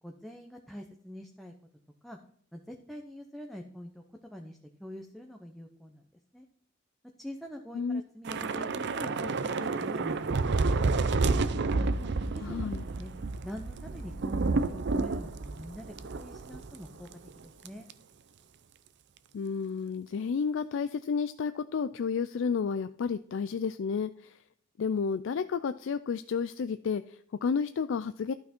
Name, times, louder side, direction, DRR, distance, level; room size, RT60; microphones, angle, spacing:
voice 1, 0.0-1.5 2.0-2.2 2.5-6.1 6.3-6.5 7.2-8.7 8.9-11.1 11.7-13.1 13.4-17.9, equal, ahead, 2 dB, 0.8 m, -45 dB
Thunder / Rain, 8.3-16.8 17.1-17.3 17.7-17.9, right 3 dB, 60° right, 0.6 m, -30 dB
voice 2, 12.4-12.8 19.3-24.4 24.8-28.3, left 5 dB, 70° left, 12 dB, 0.4 m, -31 dB
12.0 x 5.9 x 4.3 m, 0.64 s
head